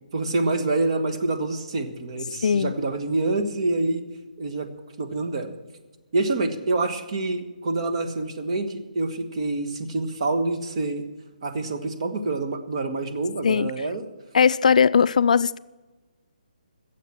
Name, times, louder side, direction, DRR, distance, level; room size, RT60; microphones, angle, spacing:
voice 1, 0.1-4.0 4.4-4.7 5.0-5.5 6.1-11.1 11.4-14.1, right 2 dB, 45° right, 1.5 m, -26 dB
voice 2, 2.4-2.7 13.4-13.7 14.3-15.6, left 6 dB, 60° left, 0.3 m, -19 dB
16.0 x 7.3 x 7.2 m
hypercardioid pair, 165°, 5 cm